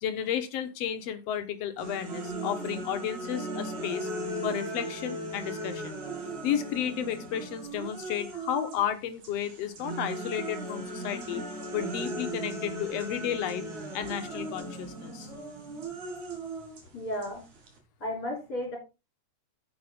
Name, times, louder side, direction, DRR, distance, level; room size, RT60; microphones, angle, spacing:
voice 1, 0.0-4.1 4.4-6.0 6.4-11.4 11.7-13.6 13.9-15.3, left 9 dB, 65° left, 8 dB, 2.0 m, -32 dB
sound 1, 1.8-8.9 9.2-17.8, right 2 dB, 70° right, 3.8 m, -37 dB
voice 2, 16.9-17.4 18.0-18.8, left 1 dB, 30° left, 1 dB, 4.0 m, -33 dB
10.5 x 7.8 x 3.6 m, 0.28 s
omnidirectional pair, 3.5 m